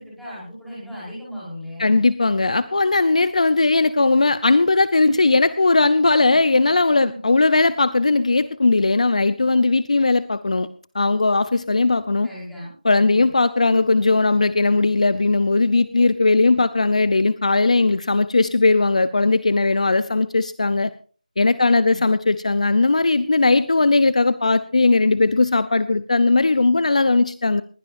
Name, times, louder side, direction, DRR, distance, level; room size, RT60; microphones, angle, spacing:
voice 1, 0.0-2.0 7.0-7.2 12.2-12.7 13.0-13.3 16.4-16.6, equal, ahead, -10 dB, 4.9 m, -37 dB
voice 2, 1.8-10.7 10.9-12.3 12.8-20.9 21.4-27.6, left 3 dB, 50° left, 15 dB, 0.7 m, -18 dB
21.0 x 16.5 x 2.6 m, 0.40 s
figure-of-eight pair, 170°, 4 cm